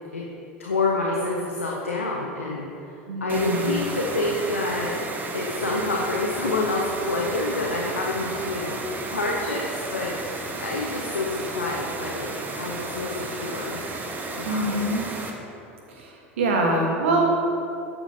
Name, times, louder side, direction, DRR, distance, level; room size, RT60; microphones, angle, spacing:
voice 1, 0.6-5.0 5.3-13.8 14.3-14.9, left 2 dB, 85° left, -2 dB, 1.0 m, -28 dB
voice 2, 3.1-3.8 14.4-15.1 15.9-17.3, right 2 dB, 70° right, 0 dB, 1.6 m, -24 dB
sound 1, 3.3-15.3, right 3 dB, 25° right, 1.4 m, -33 dB
13.5 x 9.9 x 2.9 m, 2.7 s
figure-of-eight pair, 75°, 7 cm